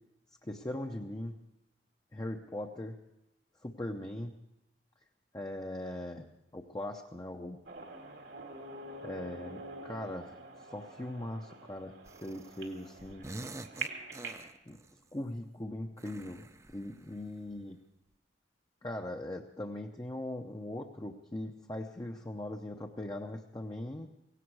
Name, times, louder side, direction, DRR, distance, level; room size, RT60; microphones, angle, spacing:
voice 1, 0.4-1.3 2.1-2.9 3.6-4.3 5.3-6.3 6.5-7.6 9.0-12.0 12.2-13.3 14.7-14.8 15.1-17.8 18.8-24.1, left 1 dB, 20° left, 2 dB, 0.7 m, -40 dB
sound 1, 7.7-14.5, right 3 dB, 85° right, 2.2 m, -45 dB
sound 2, 12.1-12.7 13.0-15.0 16.0-17.5, right 2 dB, 15° right, 0.5 m, -47 dB
17.5 x 17.0 x 4.7 m, 0.87 s
head